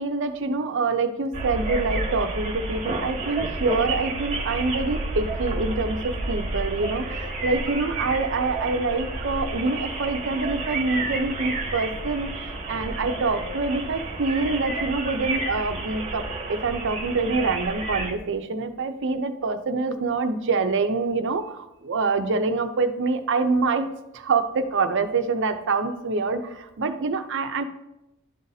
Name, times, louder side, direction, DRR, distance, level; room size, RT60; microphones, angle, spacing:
voice 1, 0.0-27.6, right 3 dB, 60° right, 8 dB, 0.6 m, -26 dB
sound 1, 1.3-18.1, right 2 dB, 30° right, 0.9 m, -30 dB
12.0 x 4.0 x 2.7 m, 0.88 s
head